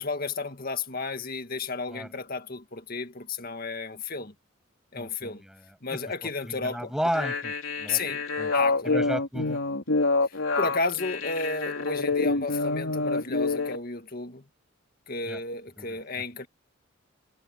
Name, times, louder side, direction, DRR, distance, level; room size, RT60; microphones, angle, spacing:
voice 1, 0.0-4.3 4.9-5.4 5.8-6.9 7.9-8.2 8.5-9.0 10.2-14.4 15.1-16.5, left 3 dB, 45° left, 1.9 m, -33 dB
voice 2, 4.9-5.6 5.9-6.0 6.4-8.0 8.4-8.5 8.8-9.6 15.2-15.4 15.8-16.0, equal, 5° right, 6.4 m, -33 dB
sound 1, 7.1-13.8, left 3 dB, 80° left, 3.4 m, -27 dB
head